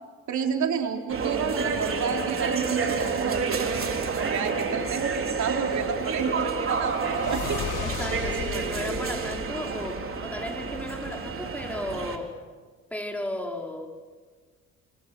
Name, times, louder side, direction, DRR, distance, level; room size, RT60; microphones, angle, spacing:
voice 1, 0.3-7.6, right 6 dB, 70° right, 3 dB, 4.1 m, -30 dB
sound 1, 1.1-12.2, right 5 dB, 45° right, 3.8 m, -29 dB
sound 2, 5.6-10.5, left 10 dB, 90° left, 1.9 m, -38 dB
voice 2, 7.8-12.4 12.9-13.9, left 1 dB, 5° left, 1 dB, 4.9 m, -35 dB
28.0 x 27.5 x 6.3 m, 1.5 s
cardioid pair, 90°, 30 cm